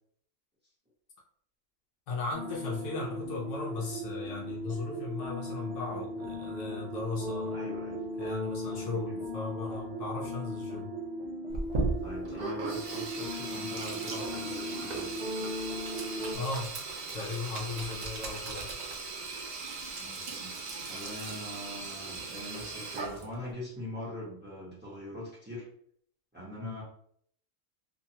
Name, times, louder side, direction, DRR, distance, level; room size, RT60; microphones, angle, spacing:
voice 1, 2.1-7.6 8.2-10.9 16.3-16.7 17.1-18.8 26.6-26.7, left 3 dB, 70° left, -2 dB, 1.0 m, -37 dB
sound 1, 2.3-16.4, equal, 65° right, 1.0 m, -38 dB
voice 2, 7.5-8.0 8.8-9.2 12.0-15.2 20.0-25.7 26.3-26.8, left 1 dB, 10° right, -7 dB, 0.9 m, -42 dB
Sink (filling or washing), 11.5-23.5, right 3 dB, 85° right, 0.3 m, -37 dB
2.7 x 2.3 x 2.7 m, 0.64 s
omnidirectional pair, 1.4 m